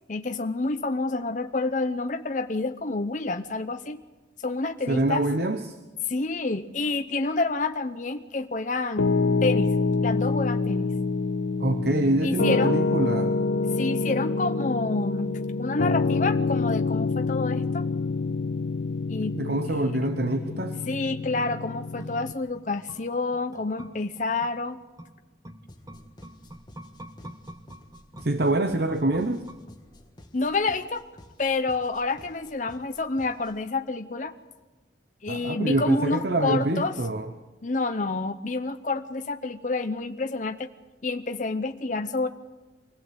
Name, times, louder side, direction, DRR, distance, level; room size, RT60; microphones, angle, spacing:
voice 1, 0.1-4.0 4.4-5.2 6.1-9.7 10.0-10.9 12.2-12.8 13.8-17.9 19.1-19.4 19.7-19.8 20.9-24.8 30.3-31.0 31.4-34.3 35.2-37.0 37.6-40.7 41.0-42.3, left 3 dB, 40° left, 7 dB, 0.8 m, -28 dB
voice 2, 4.9-5.8 11.6-13.3 19.3-20.8 28.2-29.5 35.3-37.3, right 2 dB, 55° right, 7 dB, 1.0 m, -25 dB
Piano, 9.0-22.3, left 3 dB, 75° left, 0.6 m, -26 dB
sound 1, 20.6-30.1 30.4-30.5, right 1 dB, 20° right, 1.2 m, -47 dB
sound 2, 25.7-33.7, left 1 dB, 25° left, 1.7 m, -52 dB
24.5 x 16.5 x 8.1 m, 1.2 s
head